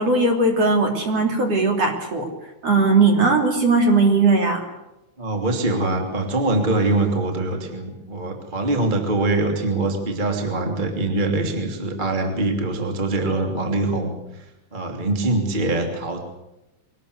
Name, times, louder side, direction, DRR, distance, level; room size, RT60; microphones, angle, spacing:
voice 1, 0.0-2.3 2.6-4.6, right 3 dB, 35° right, 3 dB, 3.2 m, -18 dB
voice 2, 5.2-14.4 14.7-16.2, right 2 dB, 20° right, 3 dB, 1.5 m, -23 dB
24.0 x 19.0 x 8.1 m, 0.95 s
omnidirectional pair, 6.0 m